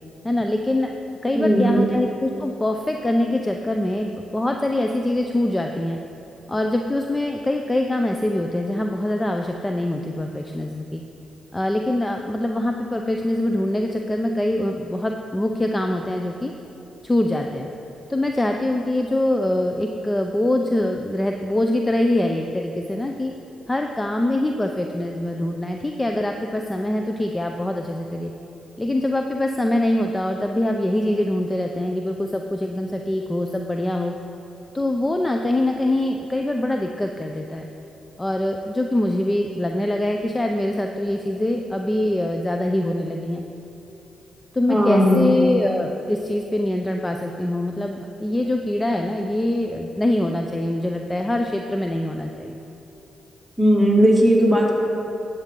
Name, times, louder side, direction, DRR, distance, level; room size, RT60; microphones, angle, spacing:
voice 1, 0.2-0.9 1.2-6.0 6.5-11.0 11.5-16.5 17.0-17.7 18.1-23.3 23.7-28.3 28.8-34.1 34.7-37.7 38.2-43.4 44.5-52.5, left 1 dB, 20° left, 4 dB, 0.6 m, -24 dB
voice 2, 1.3-1.8 44.7-45.3 53.6-54.7, equal, 5° right, -4 dB, 2.4 m, -17 dB
11.0 x 8.0 x 3.8 m, 3.0 s
supercardioid pair, 60°, 0 cm